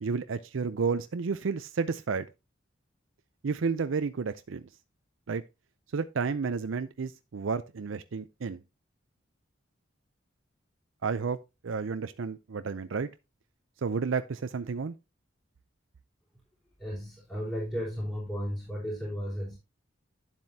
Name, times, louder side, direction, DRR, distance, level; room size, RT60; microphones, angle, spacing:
voice 1, 0.0-2.3 3.4-4.7 5.3-5.4 5.9-8.6 11.0-11.4 11.6-13.1 13.8-14.9, right 5 dB, 80° right, 0.5 m, -31 dB
voice 2, 16.8-19.6, equal, 10° left, 3.6 m, -34 dB
9.8 x 7.4 x 2.8 m
head